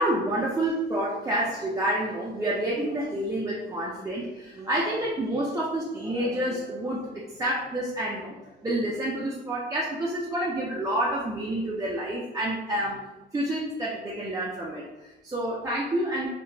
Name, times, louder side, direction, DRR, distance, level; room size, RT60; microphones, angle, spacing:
voice 1, 0.0-13.0 13.3-16.3, right 1 dB, 15° right, -5 dB, 0.4 m, -29 dB
2.8 x 2.1 x 2.6 m, 1.0 s
cardioid pair, 90°, 20 cm